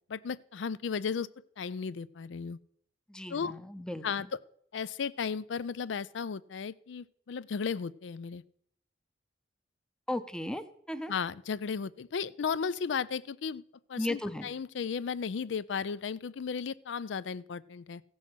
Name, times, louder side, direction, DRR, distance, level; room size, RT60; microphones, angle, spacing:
voice 1, 0.1-1.3 1.6-2.6 3.3-3.5 4.0-4.4 4.7-8.4 11.1-13.6 13.9-18.0, left 6 dB, 80° left, 19 dB, 0.4 m, -35 dB
voice 2, 3.1-4.0 10.1-11.1 14.0-14.5, left 1 dB, 5° left, 11 dB, 0.6 m, -35 dB
15.5 x 6.3 x 5.7 m, 0.69 s
head